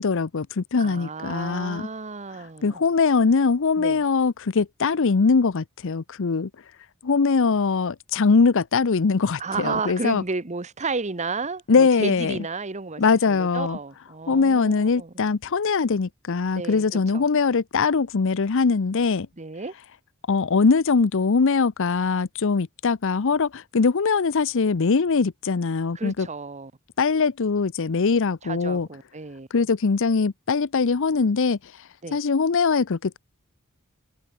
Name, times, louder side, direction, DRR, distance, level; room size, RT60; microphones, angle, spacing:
voice 1, 0.0-1.9 2.6-6.5 7.0-10.2 11.7-12.4 13.0-13.8 14.3-19.3 20.3-26.3 27.0-28.9 29.5-33.2, left 4 dB, 65° left, 0.6 m, -22 dB
voice 2, 0.8-2.8 3.8-4.0 9.4-13.0 13.3-15.1 16.5-16.8 17.1-17.2 19.4-19.7 25.9-26.7 28.4-29.5 32.0-32.2, right 4 dB, 35° right, 1.1 m, -32 dB
head